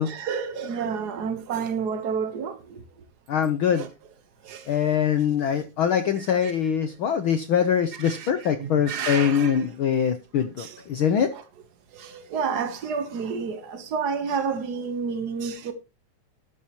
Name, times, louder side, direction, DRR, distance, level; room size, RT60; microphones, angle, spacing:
voice 1, 0.0-2.8 3.7-3.9 4.4-4.9 6.4-6.5 8.0-9.6 10.6-10.8 11.3-11.4 11.9-15.7, right 6 dB, 70° right, 0.9 m, -30 dB
voice 2, 3.3-3.9 4.7-11.3, left 8 dB, 75° left, 1.2 m, -23 dB
12.5 x 11.5 x 3.0 m
omnidirectional pair, 3.5 m